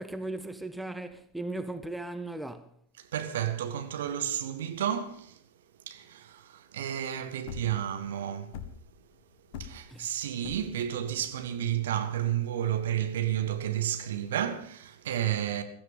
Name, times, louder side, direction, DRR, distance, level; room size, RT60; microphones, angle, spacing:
voice 1, 0.0-2.7 9.9-10.1, right 2 dB, 5° right, 0.9 m, -37 dB
voice 2, 3.1-5.4 5.9-8.6 9.6-15.6, right 10 dB, 60° right, 1.7 m, -31 dB
sound 1, 7.2-13.1, left 8 dB, 45° left, 1.7 m, -45 dB
16.0 x 14.5 x 5.6 m
figure-of-eight pair, 90°, 0 cm